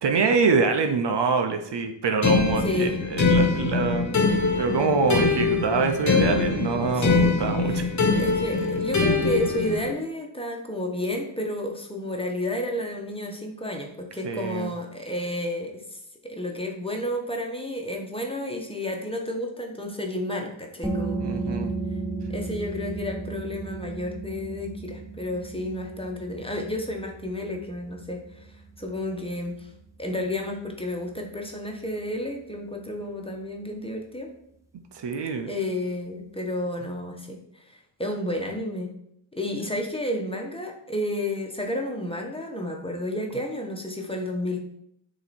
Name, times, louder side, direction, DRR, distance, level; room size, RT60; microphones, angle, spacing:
voice 1, 0.0-4.2 4.6-7.8 8.6-8.7 14.2-14.7 21.2-21.7 34.9-35.5, right 5 dB, 55° right, 6 dB, 0.8 m, -25 dB
sound 1, 2.2-9.9, left 4 dB, 35° left, 0.9 m, -23 dB
voice 2, 2.6-3.0 6.9-7.3 7.7-7.9 8.2-15.8 16.2-21.2 22.3-28.5 28.8-29.7 30.0-34.3 35.5-38.9 39.3-44.6, left 1 dB, 10° left, 1 dB, 1.3 m, -31 dB
sound 2, 20.8-32.2, right 3 dB, 5° right, 1.0 m, -35 dB
7.6 x 3.0 x 4.3 m, 0.73 s
cardioid pair, 70°, 49 cm